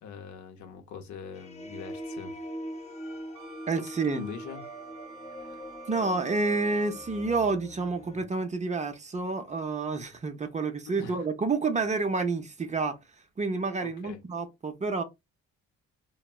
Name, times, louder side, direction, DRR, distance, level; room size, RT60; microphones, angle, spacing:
voice 1, 0.0-2.5 4.0-4.6 5.4-5.6 11.0-11.2 13.8-14.2, left 6 dB, 70° left, 0.7 m, -42 dB
sound 1, 1.3-8.3, equal, 20° left, 0.7 m, -42 dB
Wind instrument woodwind instrument, 3.3-7.4, right 8 dB, 80° right, 0.5 m, -49 dB
voice 2, 3.7-4.2 5.9-13.0 13.4-15.0, right 3 dB, 25° right, 0.5 m, -29 dB
3.3 x 2.1 x 2.3 m
cardioid pair, 90°, 30 cm